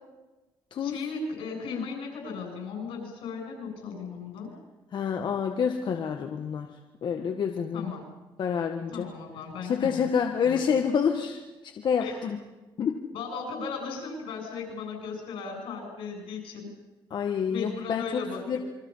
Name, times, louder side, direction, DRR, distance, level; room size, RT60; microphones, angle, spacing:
voice 1, 0.8-4.5 7.7-8.0 8.9-10.1 10.4-10.6 12.0-12.2 13.1-16.7 17.5-18.6, left 5 dB, 90° left, 2 dB, 7.9 m, -36 dB
voice 2, 4.9-6.7 7.0-7.9 8.4-9.1 9.6-12.4 12.8-13.0 17.1-18.2 18.5-18.6, left 7 dB, 60° left, 4 dB, 1.6 m, -28 dB
28.0 x 24.0 x 5.8 m, 1.1 s
cardioid pair, 100°, 9 cm